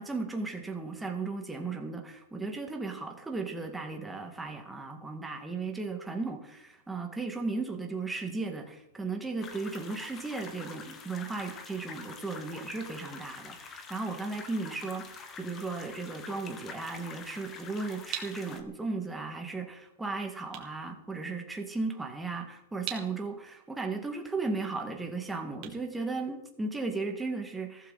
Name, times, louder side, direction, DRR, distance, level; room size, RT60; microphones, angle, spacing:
voice 1, 0.0-27.9, right 3 dB, 5° right, 3 dB, 2.0 m, -36 dB
sound 1, 9.4-18.6, left 5 dB, 20° left, 1.6 m, -46 dB
sound 2, 18.1-26.9, right 11 dB, 35° right, 2.8 m, -46 dB
16.0 x 14.5 x 4.2 m, 0.88 s
supercardioid pair, 155°, 0 cm